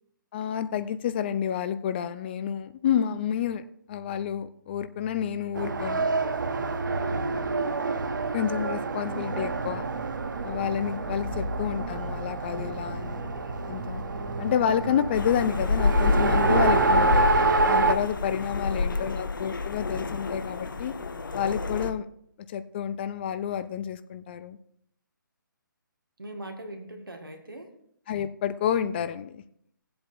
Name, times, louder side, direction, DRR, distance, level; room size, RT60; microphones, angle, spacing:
voice 1, 0.3-6.1 8.3-9.9 10.4-13.3 13.7-14.0 14.4-17.3 17.7-20.9 21.3-22.1 22.5-24.6 28.1-29.4, left 9 dB, 30° left, 12 dB, 0.5 m, -29 dB
Race car auto racing, 5.5-17.9, right 3 dB, 65° right, 0.9 m, -27 dB
sound 1, 9.4-15.7, right 1 dB, 15° right, 3.5 m, -38 dB
sound 2, 15.1-21.9, left 4 dB, 70° left, 0.8 m, -28 dB
voice 2, 18.7-19.3 26.2-27.7, right 1 dB, 85° right, 4 dB, 1.9 m, -42 dB
18.0 x 7.8 x 2.6 m, 0.69 s
figure-of-eight pair, 145°, 11 cm